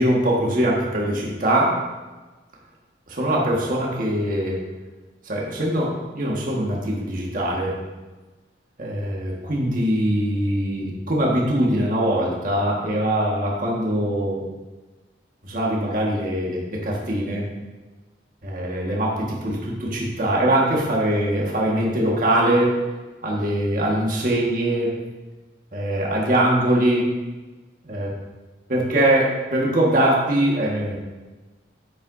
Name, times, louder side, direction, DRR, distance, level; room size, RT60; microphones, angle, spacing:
voice 1, 0.0-1.8 3.1-4.6 5.2-7.8 8.8-14.4 15.4-17.5 18.4-22.7 23.2-25.0 25.7-27.1 27.8-28.1 28.7-31.0, right 1 dB, 45° right, -3 dB, 1.7 m, -22 dB
9.6 x 9.3 x 2.7 m, 1.2 s
head